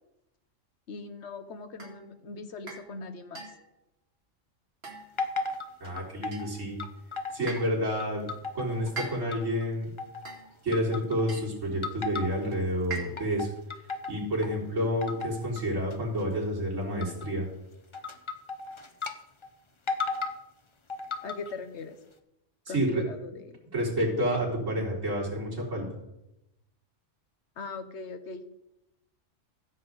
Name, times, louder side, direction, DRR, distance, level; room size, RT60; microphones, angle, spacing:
voice 1, 0.9-3.5 21.2-22.0 22.7-23.6 27.6-28.5, left 4 dB, 60° left, 9 dB, 1.2 m, -40 dB
sound 1, 1.8-2.0 2.7-2.9 3.4-3.7 4.8-5.3 6.3-6.7 7.5-7.8 9.0-9.5 10.3-10.6 11.3-11.6 12.9-13.4, right 3 dB, 50° right, 2.3 m, -41 dB
sound 2, 5.2-6.5 6.8-7.7 8.0-9.6 10.0-10.4 10.7-11.4 11.8-12.6 13.0-14.6 15.0-15.6 15.9-16.2 17.0-17.3 17.9-19.1 19.4-19.5 19.9-20.4 20.9-21.5, left 4 dB, 30° left, 0.6 m, -35 dB
voice 2, 5.8-6.8 7.3-8.3 8.5-9.9 10.6-13.5 14.1-17.5 22.7-23.0 23.7-25.8, equal, 75° right, -5 dB, 4.2 m, -29 dB
15.0 x 7.6 x 4.0 m, 0.88 s
omnidirectional pair, 1.3 m